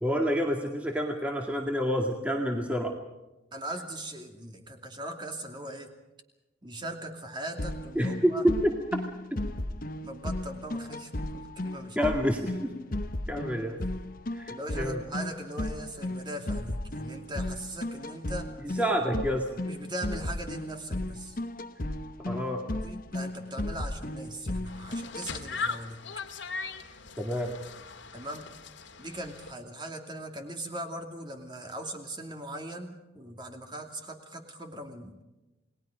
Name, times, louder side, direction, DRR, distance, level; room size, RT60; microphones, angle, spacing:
voice 1, 0.0-2.9 8.0-8.7 12.0-12.7 13.3-13.8 14.3-15.0 18.6-19.4 22.3-22.6 27.2-27.5, equal, 5° right, 1 dB, 2.2 m, -28 dB
voice 2, 3.5-5.9 6.6-8.5 10.0-12.1 14.5-18.8 19.6-21.4 22.8-26.0 28.1-28.5 29.0-35.2, right 1 dB, 25° right, 4 dB, 2.7 m, -40 dB
sound 1, 7.6-25.3, left 1 dB, 45° left, 1.1 m, -35 dB
sound 2, 24.7-29.5, left 4 dB, 70° left, 2.1 m, -39 dB
29.5 x 20.0 x 5.2 m, 1.0 s
head